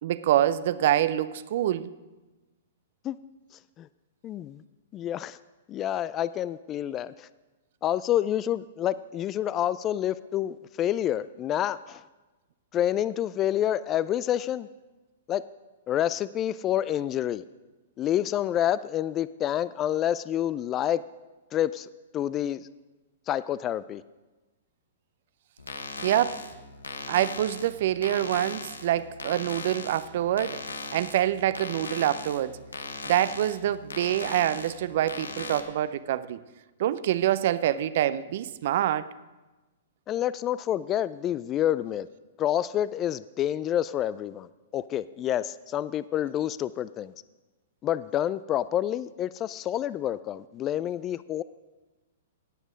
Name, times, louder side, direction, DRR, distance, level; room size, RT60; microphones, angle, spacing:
voice 1, 0.0-1.9 26.0-26.4 27.1-30.6 30.9-32.6 33.1-36.4 36.8-39.1, right 12 dB, 55° right, 0.5 m, -26 dB
voice 2, 4.2-4.6 4.9-5.4 5.7-7.3 7.8-12.0 12.7-14.7 15.3-15.4 15.9-17.4 18.0-21.0 21.5-22.7 23.3-24.0 40.1-42.1 42.4-47.1 47.8-51.4, left 11 dB, 30° left, 0.3 m, -28 dB
sound 1, 25.6-35.6, left 3 dB, 85° left, 1.1 m, -39 dB
17.0 x 8.1 x 5.0 m
figure-of-eight pair, 110°, 0 cm